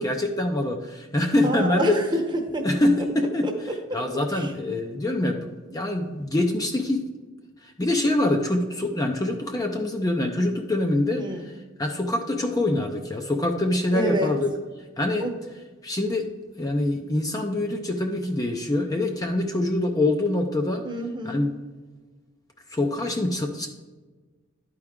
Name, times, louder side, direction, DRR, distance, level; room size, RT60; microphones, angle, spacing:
voice 1, 0.0-2.0 2.6-3.5 3.9-7.0 7.6-11.5 11.8-14.5 15.0-15.3 15.8-16.3 16.6-20.8 21.2-21.5 22.7-23.7, left 1 dB, 20° left, 3 dB, 0.5 m, -25 dB
voice 2, 1.4-2.7 3.4-3.5 3.9-4.0 4.3-4.5 11.2-11.5 13.9-14.3 15.2-15.3 20.8-21.4, right 1 dB, 25° right, 4 dB, 0.9 m, -27 dB
11.5 x 4.6 x 3.6 m, 1.3 s
head